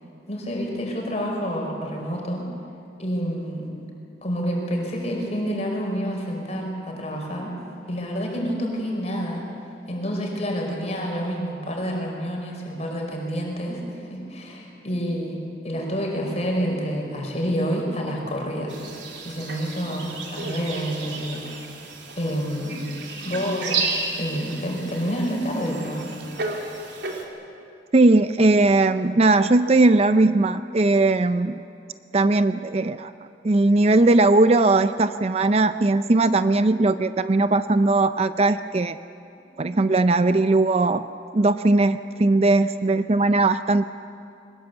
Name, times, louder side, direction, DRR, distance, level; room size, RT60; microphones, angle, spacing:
voice 1, 0.3-2.5 3.0-3.7 4.2-7.5 7.9-9.4 9.9-15.4 15.6-18.8 19.2-21.4 22.2-22.8 23.2-26.2, equal, 40° left, 0 dB, 5.1 m, -28 dB
sound 1, 18.7-27.2, right 3 dB, 80° right, 3.0 m, -33 dB
voice 2, 27.9-31.6 32.1-33.1 33.4-39.0 39.6-41.0 41.3-43.8, right 2 dB, 35° right, 11 dB, 0.5 m, -19 dB
22.0 x 21.0 x 8.0 m, 2.7 s
head